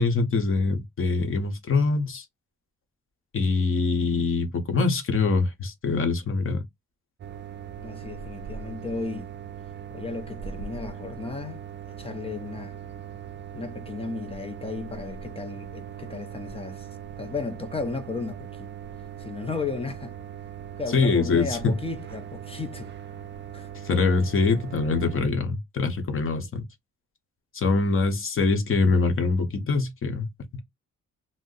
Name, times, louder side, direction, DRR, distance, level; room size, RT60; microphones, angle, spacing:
voice 1, 0.0-2.2 3.3-6.6 20.9-21.7 23.9-26.6 27.5-30.3, left 4 dB, 45° left, 0.9 m, -24 dB
sound 1, 7.2-25.2, right 8 dB, 40° right, 0.4 m, -40 dB
voice 2, 7.8-9.3 9.9-12.8 13.5-16.9 17.2-18.7 19.2-20.1 20.8-22.9 23.5-23.7, left 4 dB, 20° left, 0.5 m, -34 dB
2.6 x 2.0 x 3.7 m
cardioid pair, 130°, 29 cm